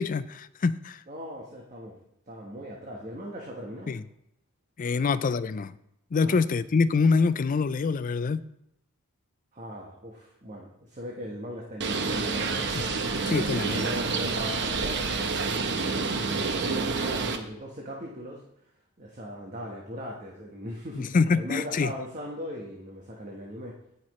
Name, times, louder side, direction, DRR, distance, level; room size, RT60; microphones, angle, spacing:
voice 1, 0.0-1.0 3.9-4.0 4.8-5.7 6.1-8.4 12.7-12.8 13.2-13.8 21.0-21.9, left 4 dB, 40° left, 15 dB, 0.4 m, -25 dB
voice 2, 1.1-3.9 4.9-5.0 6.2-6.4 9.5-12.9 13.7-18.4 19.0-23.8, equal, 35° right, -2 dB, 1.2 m, -39 dB
Bird, 11.8-17.4, right 4 dB, 55° right, 0.9 m, -28 dB
16.5 x 5.8 x 3.1 m, 0.78 s
head